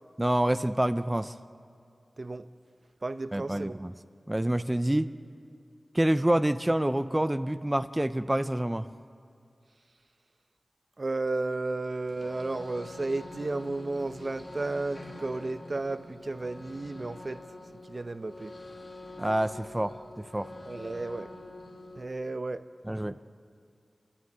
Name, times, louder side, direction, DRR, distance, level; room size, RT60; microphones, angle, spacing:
voice 1, 0.2-1.3 3.3-3.9 4.3-5.1 5.9-8.9 19.2-20.5 22.9-23.2, right 1 dB, 15° right, 0.6 m, -27 dB
voice 2, 2.2-2.5 3.0-3.8 11.0-17.5 17.9-18.5 20.7-21.3 22.0-22.7, right 2 dB, 50° right, 0.8 m, -33 dB
sound 1, 12.1-22.0, left 2 dB, 55° left, 2.5 m, -46 dB
27.0 x 13.0 x 9.5 m
wide cardioid pair, 55°, 0 cm